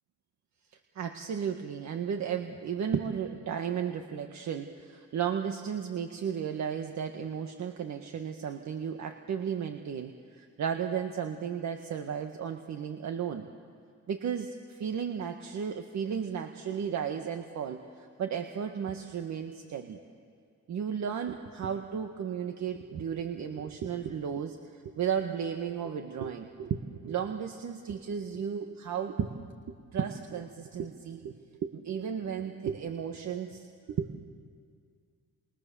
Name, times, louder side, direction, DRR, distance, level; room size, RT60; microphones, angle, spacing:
voice 1, 0.9-13.5 14.1-20.0 20.7-29.3 29.9-31.3 31.6-34.1, right 7 dB, 65° right, 5 dB, 1.6 m, -34 dB
29.5 x 27.5 x 7.1 m, 2.2 s
cardioid pair, 90°, 30 cm